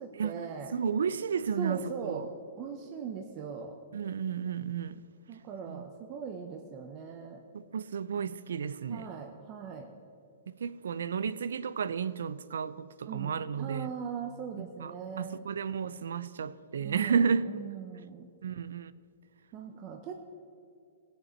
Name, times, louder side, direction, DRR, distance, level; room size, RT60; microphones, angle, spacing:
voice 1, 0.0-0.8 1.6-2.3 2.6-3.8 5.3-7.4 8.9-9.9 13.0-15.4 16.8-18.3 19.5-20.1, right 6 dB, 35° right, 0.7 m, -40 dB
voice 2, 0.7-2.3 3.9-5.0 5.7-5.8 7.5-9.1 10.6-13.9 14.6-17.5 18.4-18.9, right 6 dB, 85° right, 0.4 m, -32 dB
16.0 x 6.7 x 4.4 m
hypercardioid pair, 150°, 0 cm